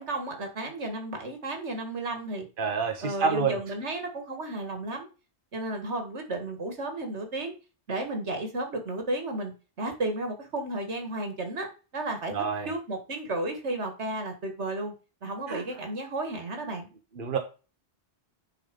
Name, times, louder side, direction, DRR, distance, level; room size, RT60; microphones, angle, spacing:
voice 1, 0.0-2.5 3.0-5.1 5.5-7.5 7.9-11.7 11.9-12.3 12.7-14.9 15.2-16.9, right 2 dB, 80° right, 5 dB, 2.2 m, -33 dB
voice 2, 2.6-3.6 12.3-12.7 15.5-15.6 17.1-17.4, right 5 dB, 50° right, 4 dB, 1.3 m, -28 dB
9.6 x 4.0 x 5.2 m, 0.33 s
omnidirectional pair, 1.1 m